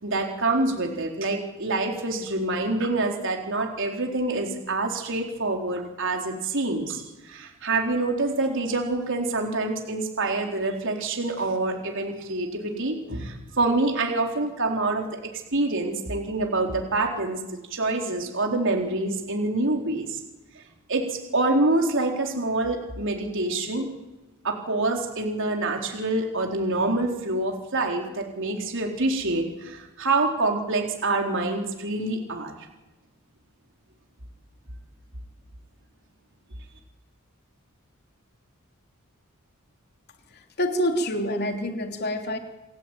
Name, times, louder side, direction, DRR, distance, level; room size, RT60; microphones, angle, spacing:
voice 1, 0.0-17.4 17.7-20.2 20.6-20.7 20.9-23.9 24.4-32.6, right 2 dB, 65° right, 2 dB, 4.1 m, -26 dB
voice 2, 40.6-42.4, equal, 50° left, 4 dB, 3.3 m, -26 dB
29.0 x 18.5 x 9.2 m, 1.1 s
head